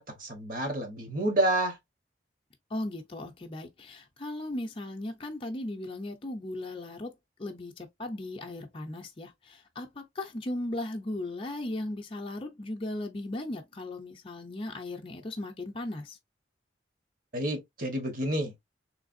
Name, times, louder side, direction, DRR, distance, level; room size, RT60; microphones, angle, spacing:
voice 1, 0.0-1.8 17.3-18.5, right 1 dB, 45° right, 1.1 m, -29 dB
voice 2, 2.7-7.1 7.4-16.2, left 1 dB, 30° left, 0.5 m, -37 dB
3.4 x 3.2 x 2.5 m
head